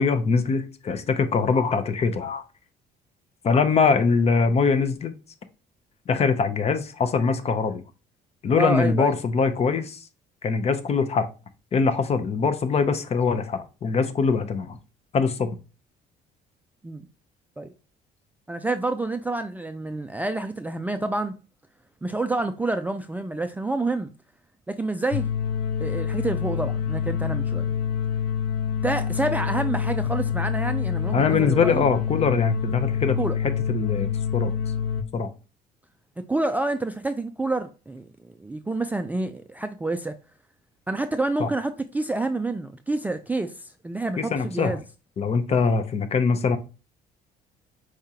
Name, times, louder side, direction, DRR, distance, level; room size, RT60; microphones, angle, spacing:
voice 1, 0.0-2.4 3.4-5.1 6.1-7.8 8.4-10.1 10.4-11.3 11.7-14.8 15.1-15.6 31.1-33.2 33.4-34.5 35.1-35.3 41.4-41.5 44.3-44.8 45.2-46.6, left 5 dB, 40° left, 0.6 m, -23 dB
voice 2, 8.6-9.1 16.8-17.1 17.6-17.7 18.5-21.4 22.0-24.1 24.7-25.3 25.8-27.7 28.8-31.9 33.2-33.4 36.2-38.1 38.4-40.1 40.9-44.8, right 2 dB, 10° right, 0.3 m, -28 dB
sound 1, 25.1-35.0, left 7 dB, 80° left, 0.6 m, -26 dB
4.8 x 3.6 x 2.8 m
cardioid pair, 110°, 17 cm